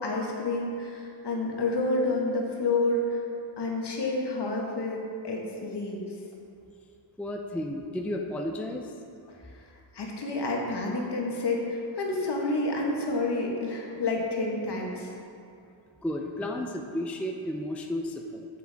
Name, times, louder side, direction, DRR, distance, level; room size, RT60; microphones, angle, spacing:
voice 1, 0.0-3.2 3.6-6.1 9.9-15.1, left 2 dB, 55° left, -1 dB, 1.4 m, -29 dB
voice 2, 7.2-8.9 16.0-18.5, left 1 dB, 5° left, 2 dB, 0.4 m, -33 dB
7.6 x 7.5 x 3.5 m, 2.5 s
cardioid pair, 90°, 48 cm